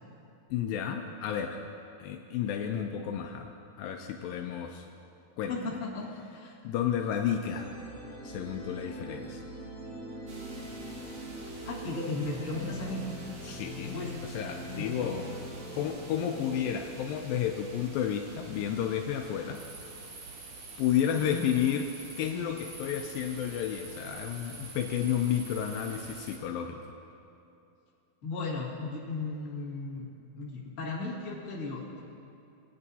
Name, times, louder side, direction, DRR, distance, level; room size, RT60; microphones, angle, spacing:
voice 1, 0.5-1.6 2.0-3.5 3.8-4.9 5.4-5.5 6.6-7.8 8.2-9.4 13.4-14.0 14.2-15.3 15.7-19.6 20.8-21.9 22.2-26.9, left 9 dB, 80° left, 4 dB, 2.2 m, -31 dB
voice 2, 5.5-6.5 11.6-13.0 13.9-14.1 14.7-15.1 16.6-16.7 21.1-21.4 28.2-30.1 30.3-32.0, left 3 dB, 35° left, -6 dB, 1.3 m, -36 dB
sound 1, 7.4-18.9, equal, 5° left, 2.1 m, -43 dB
sound 2, 10.3-26.4, right 3 dB, 75° right, 1.2 m, -47 dB
20.5 x 9.5 x 2.8 m, 2.6 s
omnidirectional pair, 4.3 m